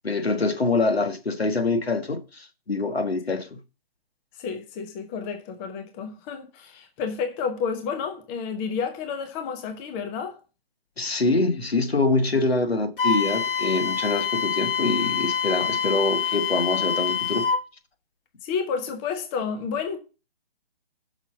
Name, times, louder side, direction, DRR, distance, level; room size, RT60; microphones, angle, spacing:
voice 1, 0.0-3.6 11.0-17.5, left 3 dB, 85° left, 1.5 m, -25 dB
voice 2, 4.4-10.4 18.4-20.0, left 6 dB, 15° left, 0.6 m, -30 dB
Wind instrument woodwind instrument, 13.0-17.6, left 7 dB, 60° left, 1.0 m, -26 dB
5.9 x 5.6 x 5.6 m
figure-of-eight pair, 140°, 30 cm